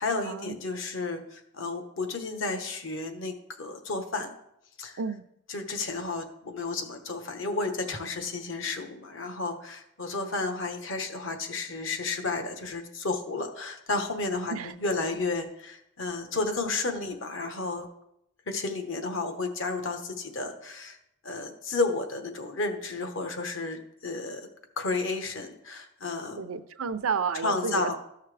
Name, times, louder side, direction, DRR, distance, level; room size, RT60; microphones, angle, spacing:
voice 1, 0.0-4.3 4.8-5.0 5.5-17.9 18.5-21.0 21.2-24.5 24.8-26.5 27.3-28.0, left 3 dB, 70° left, 6 dB, 1.1 m, -32 dB
voice 2, 26.4-28.0, right 5 dB, 90° right, 12 dB, 0.5 m, -31 dB
13.5 x 5.7 x 3.3 m, 0.80 s
head